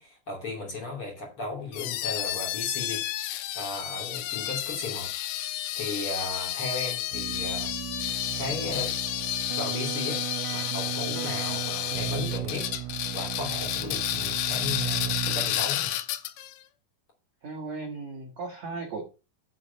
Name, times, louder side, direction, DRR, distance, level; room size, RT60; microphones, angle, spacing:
voice 1, 0.0-3.0 3.5-5.1 5.7-7.7 8.4-8.9 9.5-10.2 10.5-12.7 13.1-16.0, left 2 dB, 35° left, 3.0 m, -35 dB
sound 1, 1.7-16.5, left 13 dB, 80° left, 2.7 m, -31 dB
Keyboard (musical), 7.1-15.8, right 13 dB, 90° right, 3.3 m, -36 dB
voice 2, 17.4-19.0, right 3 dB, 60° right, 1.8 m, -36 dB
10.0 x 6.4 x 5.2 m
omnidirectional pair, 5.6 m